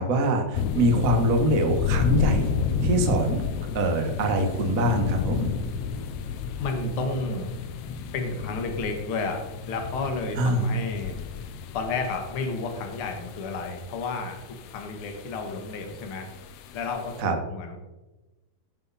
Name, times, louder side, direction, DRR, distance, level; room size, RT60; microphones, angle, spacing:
voice 1, 0.0-2.5 2.8-3.4 3.7-5.5 10.4-10.7 17.2-17.3, right 1 dB, 60° right, 3 dB, 0.8 m, -23 dB
sound 1, 0.5-17.2, left 7 dB, 75° left, 1.9 m, -32 dB
voice 2, 6.6-7.5 8.1-11.2 11.7-14.4 14.7-16.3 16.7-17.8, left 3 dB, 50° left, 4 dB, 1.9 m, -31 dB
16.0 x 5.8 x 4.1 m, 1.1 s
omnidirectional pair, 3.7 m